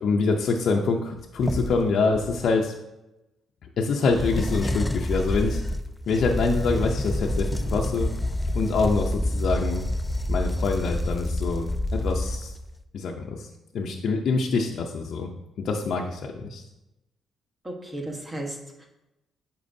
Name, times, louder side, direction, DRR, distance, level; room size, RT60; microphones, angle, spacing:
voice 1, 0.0-2.7 3.8-5.6 6.1-8.1 8.5-9.8 10.3-12.5 12.9-13.5 13.7-15.3 15.6-16.6, left 4 dB, 65° left, 0 dB, 0.5 m, -25 dB
sound 1, 1.2-2.4 4.1-12.7, left 1 dB, 10° left, 0.4 m, -28 dB
voice 2, 17.6-18.9, right 1 dB, 20° right, 1 dB, 1.2 m, -35 dB
8.5 x 4.4 x 2.6 m, 0.95 s
cardioid pair, 90°, 0 cm